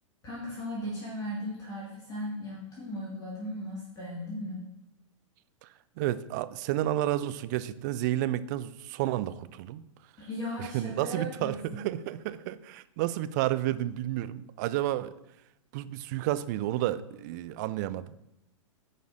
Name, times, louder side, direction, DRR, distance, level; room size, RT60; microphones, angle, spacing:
voice 1, 0.2-4.6 10.2-11.8, equal, 20° left, -4 dB, 1.8 m, -37 dB
voice 2, 6.0-9.8 10.6-15.1 15.7-18.1, right 14 dB, 35° right, 14 dB, 0.4 m, -31 dB
14.0 x 5.0 x 2.6 m, 0.87 s
figure-of-eight pair, 105°, 17 cm